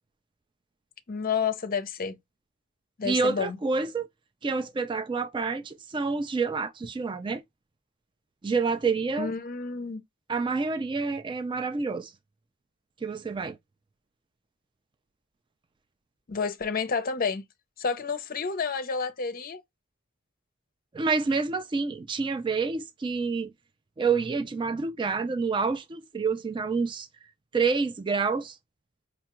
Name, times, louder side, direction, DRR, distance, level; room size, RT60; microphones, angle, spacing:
voice 1, 1.1-2.2 3.0-3.6 9.2-10.0 16.3-17.4 17.8-19.6, left 5 dB, 45° left, 0.6 m, -30 dB
voice 2, 3.0-4.1 4.4-7.4 8.4-9.3 10.3-12.1 13.0-13.6 20.9-23.5 24.0-27.1 27.5-28.6, right 4 dB, 25° right, 0.4 m, -28 dB
5.1 x 2.3 x 2.9 m
head